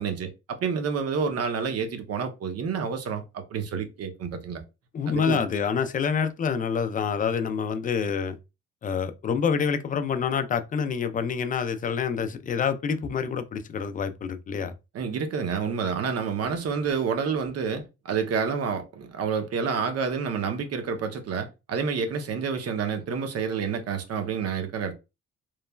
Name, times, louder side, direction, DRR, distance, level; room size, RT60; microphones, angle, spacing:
voice 1, 0.0-4.6 5.1-5.4 14.9-24.9, right 6 dB, 55° right, 0.7 m, -29 dB
voice 2, 4.9-8.4 8.8-14.7, left 6 dB, 30° left, 0.3 m, -27 dB
3.1 x 2.1 x 2.2 m
cardioid pair, 90°, 30 cm